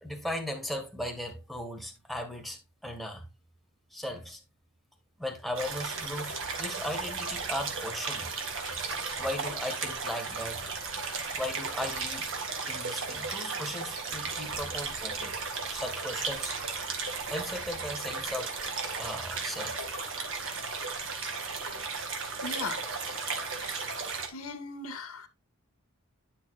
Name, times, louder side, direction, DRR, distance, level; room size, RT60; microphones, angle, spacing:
voice 1, 0.0-3.3 3.9-4.4 5.2-8.3 8.6-8.8 9.2-10.7 11.4-12.3 12.7-15.4 15.7-16.5 17.3-18.6 18.9-19.9, left 1 dB, ahead, 1.7 m, -37 dB
sound 1, 5.5-24.3, right 4 dB, 65° right, 2.0 m, -35 dB
voice 2, 22.4-22.8 23.5-24.0 24.3-25.3, left 3 dB, 85° left, 1.6 m, -39 dB
10.0 x 6.8 x 2.5 m
head